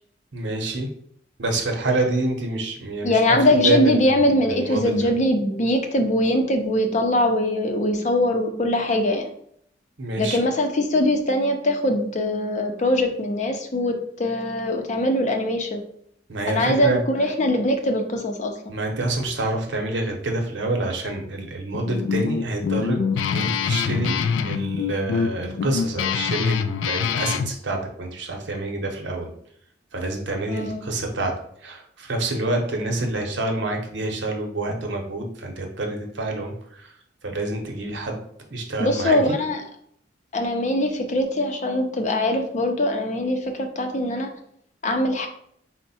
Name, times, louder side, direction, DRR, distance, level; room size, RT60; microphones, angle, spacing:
voice 1, 0.3-0.9 1.4-3.4 3.6-4.2 4.5-5.1 10.0-10.4 16.3-17.0 18.7-23.0 23.3-29.3 29.9-31.3 31.6-36.9 37.2-38.2 38.5-39.4, right 2 dB, 75° right, 2 dB, 0.9 m, -27 dB
voice 2, 3.0-9.3 10.2-15.8 16.5-18.5 30.5-30.8 38.8-39.6 40.3-44.3 44.8-45.3, left 1 dB, 40° left, 4 dB, 0.6 m, -22 dB
Guitar, 21.7-27.5, left 6 dB, 85° left, 0.3 m, -25 dB
4.5 x 2.1 x 4.1 m, 0.67 s
head